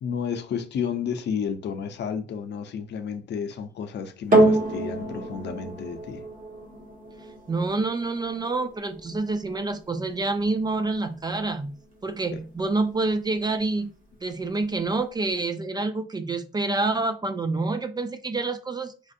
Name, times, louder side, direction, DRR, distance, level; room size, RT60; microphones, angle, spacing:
voice 1, 0.0-6.2 12.3-12.4, left 7 dB, 60° left, 0.6 m, -31 dB
sound 1, 4.3-12.9 13.6-13.7, right 1 dB, 45° right, 1.3 m, -28 dB
voice 2, 7.5-11.8 12.0-13.9 14.2-18.9, right 3 dB, 20° right, 0.4 m, -27 dB
4.3 x 2.6 x 2.5 m
cardioid pair, 90°, 20 cm